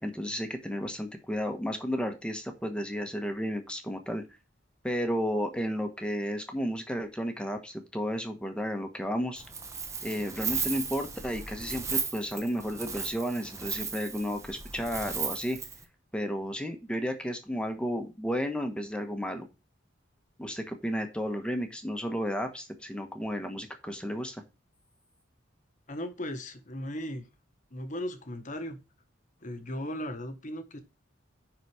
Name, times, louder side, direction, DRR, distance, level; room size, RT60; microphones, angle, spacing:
voice 1, 0.0-4.2 4.8-9.4 10.0-15.6 16.1-19.5 20.4-24.4, equal, 5° left, 1.2 m, -33 dB
Wind, 9.4-15.8, right 5 dB, 15° right, 1.0 m, -36 dB
voice 2, 25.9-27.3 27.7-28.8 29.4-30.8, equal, 40° left, 1.3 m, -37 dB
10.0 x 4.1 x 4.8 m
head